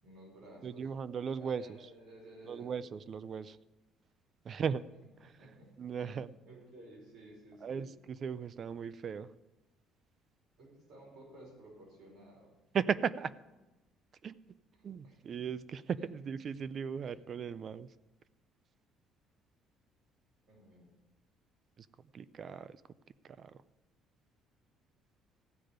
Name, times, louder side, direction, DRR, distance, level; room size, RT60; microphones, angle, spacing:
voice 1, 0.0-0.9 1.3-3.0 5.4-6.2 6.4-7.9 10.6-12.5 14.8-15.4 16.0-16.1 17.0-17.1 20.5-20.9, right 1 dB, 65° right, -3 dB, 5.4 m, -55 dB
voice 2, 0.6-1.7 2.5-3.6 4.4-4.9 5.8-6.3 7.6-9.3 12.7-13.3 14.2-14.3 14.8-17.9 21.8-21.9 22.1-22.8 23.2-23.5, right 7 dB, 35° right, 17 dB, 0.4 m, -37 dB
15.0 x 5.1 x 9.2 m, 1.1 s
cardioid pair, 170°, 0 cm